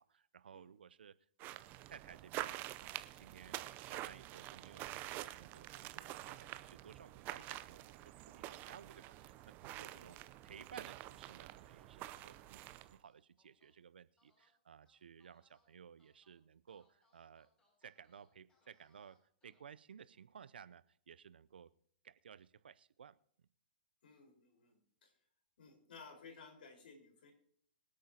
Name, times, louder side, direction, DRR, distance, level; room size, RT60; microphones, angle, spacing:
voice 1, 0.0-10.2 10.4-17.5 17.8-19.2 19.4-21.7 22.0-23.5, right 7 dB, 75° right, 16 dB, 0.6 m, -57 dB
sound 1, 1.4-13.0, right 15 dB, 35° right, 0.7 m, -47 dB
sound 2, 2.1-2.6 3.0-3.8 4.6-5.2 5.5-5.7 7.2-7.6 7.9-8.8 9.4-9.9 10.8-12.5 13.0-13.7 14.2-14.5 14.9-15.7 16.0-16.3 16.7-19.6, left 2 dB, 15° left, 6.4 m, -78 dB
voice 2, 9.9-10.2 24.0-25.1 25.6-27.3, left 4 dB, 70° left, 2 dB, 4.6 m, -58 dB
25.0 x 8.6 x 2.9 m, 0.62 s
hypercardioid pair, 115°, 5 cm